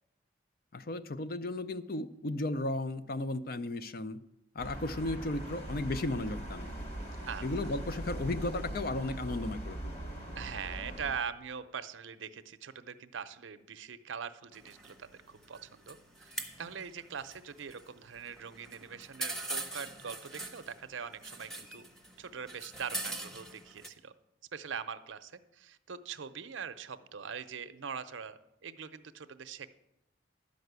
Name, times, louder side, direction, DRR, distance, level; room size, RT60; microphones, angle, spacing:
voice 1, 0.7-4.2 4.5-6.7 7.4-9.9, left 2 dB, 50° left, 12 dB, 0.5 m, -35 dB
sound 1, 4.6-11.1, right 1 dB, 35° left, 1.7 m, -41 dB
voice 2, 10.4-21.9 22.2-24.1 24.5-29.7, right 6 dB, 85° right, 11 dB, 0.6 m, -42 dB
sound 2, 14.5-23.9, right 2 dB, ahead, 0.8 m, -43 dB
11.5 x 5.3 x 8.0 m, 0.89 s
head